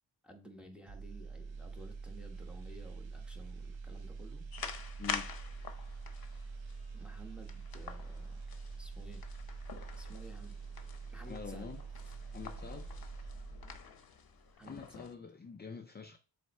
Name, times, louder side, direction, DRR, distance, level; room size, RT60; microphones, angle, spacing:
voice 1, 0.2-4.4 6.9-8.4 8.7-9.3 10.0-10.6 11.1-11.7 14.6-15.1, right 1 dB, ahead, 1.2 m, -53 dB
sound 1, 0.9-14.0 14.3-14.5, right 4 dB, 85° right, 0.9 m, -45 dB
sound 2, 4.5-15.1, left 6 dB, 55° left, 0.8 m, -47 dB
voice 2, 5.0-5.4 11.3-11.8 12.3-12.9 14.6-16.2, left 6 dB, 25° left, 0.4 m, -46 dB
7.5 x 3.3 x 4.2 m
wide cardioid pair, 115°, 45 cm